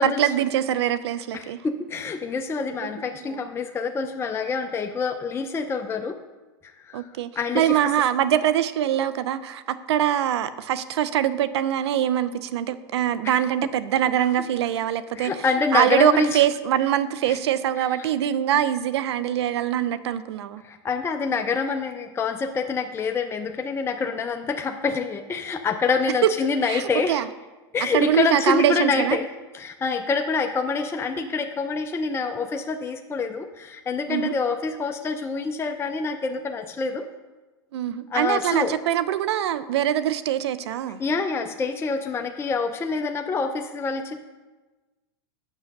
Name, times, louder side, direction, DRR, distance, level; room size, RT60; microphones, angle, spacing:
voice 1, 0.0-1.6 2.8-3.4 6.9-15.3 15.7-20.6 26.6-26.8 27.1-27.3 27.9-29.2 34.1-34.3 37.7-41.0, right 11 dB, 80° right, 14 dB, 0.6 m, -23 dB
voice 2, 1.3-6.2 6.8-7.1 7.4-7.8 13.2-13.4 15.2-16.4 17.3-17.4 20.6-27.2 27.7-29.3 29.5-37.1 38.1-38.7 41.0-44.2, left 4 dB, 20° left, 5 dB, 0.5 m, -26 dB
7.4 x 6.3 x 6.5 m, 1.2 s
hypercardioid pair, 110°, 14 cm